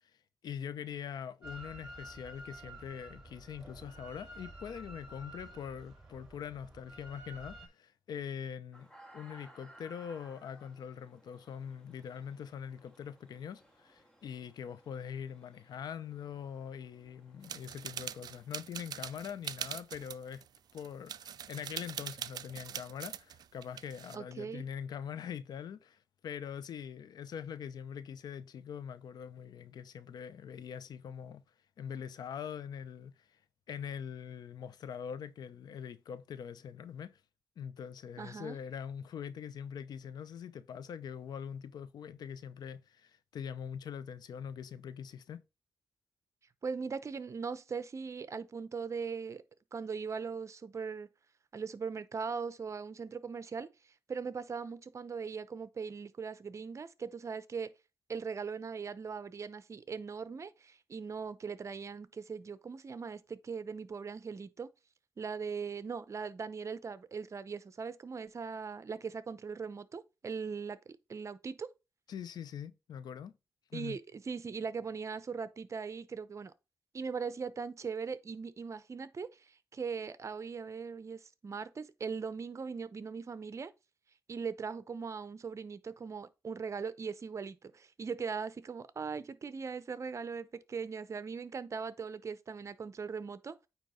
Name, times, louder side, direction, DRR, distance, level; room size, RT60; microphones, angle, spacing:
voice 1, 0.4-8.9 9.1-20.4 20.7-31.4 31.8-33.1 33.7-37.1 37.6-45.4 72.1-73.3 73.7-74.0, left 8 dB, 80° left, 0.6 m, -43 dB
Drill, 1.4-7.7, right 1 dB, 15° right, 4.8 m, -50 dB
sound 1, 8.7-18.6, right 1 dB, 10° left, 1.7 m, -60 dB
sound 2, 17.4-24.2, right 9 dB, 75° right, 0.4 m, -43 dB
voice 2, 24.1-24.7 38.2-38.6 46.6-49.4 49.7-51.1 51.5-53.7 54.1-57.7 58.1-64.7 65.2-70.8 71.1-71.7 73.7-76.5 76.9-83.7 84.3-93.6, right 5 dB, 45° right, 0.8 m, -40 dB
9.0 x 3.1 x 5.0 m
cardioid pair, 85°, 7 cm